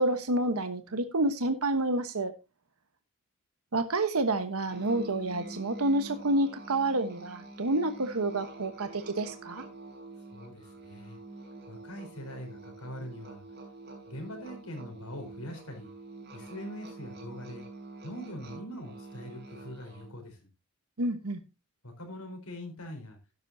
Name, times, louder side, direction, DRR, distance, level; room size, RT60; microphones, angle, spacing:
voice 1, 0.0-2.3 3.7-9.6 21.0-21.4, right 2 dB, 80° right, 9 dB, 1.2 m, -29 dB
Musical instrument, 4.7-20.2, right 2 dB, 45° right, 5.1 m, -46 dB
voice 2, 10.3-11.2 11.7-13.4 14.1-15.9 16.3-17.6 18.0-20.5 21.8-23.2, left 1 dB, 90° left, 4 dB, 4.2 m, -43 dB
12.5 x 11.0 x 2.7 m, 0.24 s
head